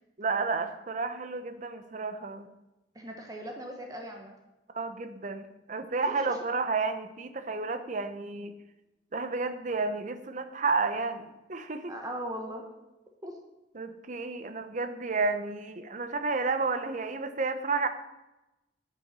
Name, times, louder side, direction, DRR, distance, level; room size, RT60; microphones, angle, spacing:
voice 1, 0.2-2.5 4.7-8.5 9.1-11.9 13.7-17.9, right 4 dB, 45° right, 9 dB, 0.8 m, -31 dB
voice 2, 2.9-4.3 6.1-6.4 11.9-12.7 13.2-13.4, right 1 dB, 20° right, 2 dB, 1.1 m, -39 dB
9.9 x 7.2 x 5.5 m, 0.97 s
head